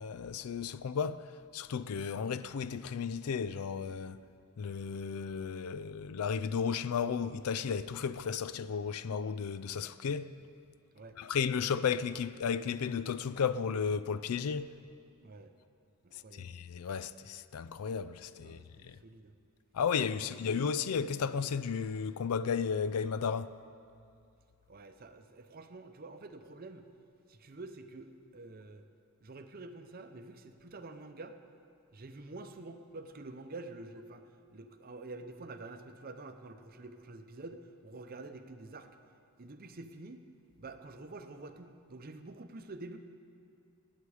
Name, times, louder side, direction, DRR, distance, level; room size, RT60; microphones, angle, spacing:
voice 1, 0.0-4.2 4.6-10.4 11.2-14.8 16.3-19.0 19.7-23.6, left 6 dB, 85° left, 0.4 m, -34 dB
voice 2, 15.2-15.5 16.0-16.5 18.4-19.3 20.2-20.5 24.7-26.9 27.3-28.8 29.2-31.4 31.9-34.2 34.5-38.9 39.4-40.2 40.6-43.0, right 2 dB, 40° right, 0.7 m, -48 dB
19.5 x 8.3 x 4.9 m
head